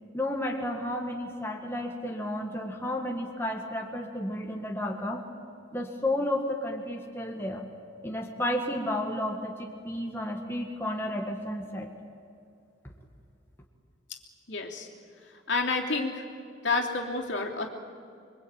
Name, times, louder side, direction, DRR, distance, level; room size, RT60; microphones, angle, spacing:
voice 1, 0.1-5.2 5.7-7.7 8.0-11.9, left 1 dB, 10° left, 0 dB, 1.9 m, -32 dB
voice 2, 14.5-14.9 15.5-16.3 16.6-17.7, left 3 dB, 60° left, 0 dB, 3.1 m, -29 dB
26.5 x 23.5 x 9.1 m, 2.4 s
head